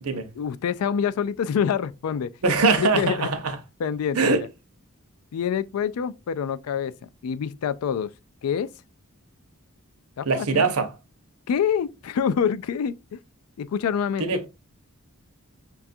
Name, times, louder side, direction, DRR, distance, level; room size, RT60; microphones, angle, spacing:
voice 1, 0.4-2.3 2.8-3.3 3.8-4.5 5.3-8.1 8.4-8.7 10.2-10.7 11.5-13.2 13.6-14.2, left 7 dB, 70° left, 0.3 m, -26 dB
voice 2, 2.4-3.6 4.1-4.4 10.3-10.9 14.2-14.5, right 4 dB, 70° right, 0.7 m, -22 dB
5.7 x 2.3 x 2.6 m
head